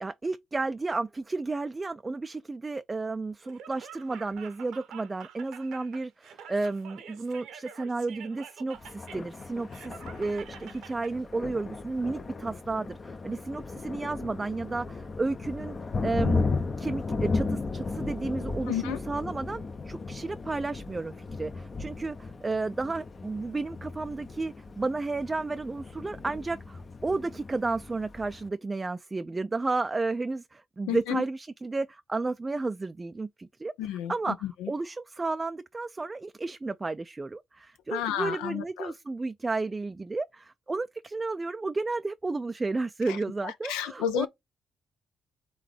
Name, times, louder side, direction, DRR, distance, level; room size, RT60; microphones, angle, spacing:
voice 1, 0.0-16.5 16.8-33.7 34.1-44.3, right 3 dB, 30° right, 0.3 m, -32 dB
Laughter, 3.4-11.1, right 8 dB, 70° right, 0.8 m, -48 dB
Thunder, 8.8-28.5, left 3 dB, 40° left, 0.6 m, -35 dB
voice 2, 18.7-19.0 30.9-31.2 33.8-34.7 37.9-38.9 43.1-44.3, left 11 dB, 80° left, 0.3 m, -32 dB
3.8 x 3.5 x 3.2 m
hypercardioid pair, 45°, 0 cm